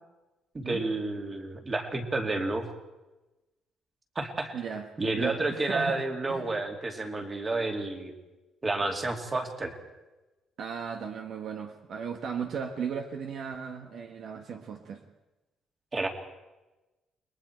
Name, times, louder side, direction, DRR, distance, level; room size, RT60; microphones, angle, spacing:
voice 1, 0.5-2.7 4.2-4.6 5.0-8.1 8.6-9.8 15.9-16.1, right 2 dB, 20° right, 4 dB, 2.4 m, -30 dB
voice 2, 4.5-4.9 5.1-6.6 10.6-15.0, right 6 dB, 55° right, 5 dB, 1.4 m, -36 dB
29.5 x 21.5 x 4.5 m, 1.1 s
cardioid pair, 145°, 0 cm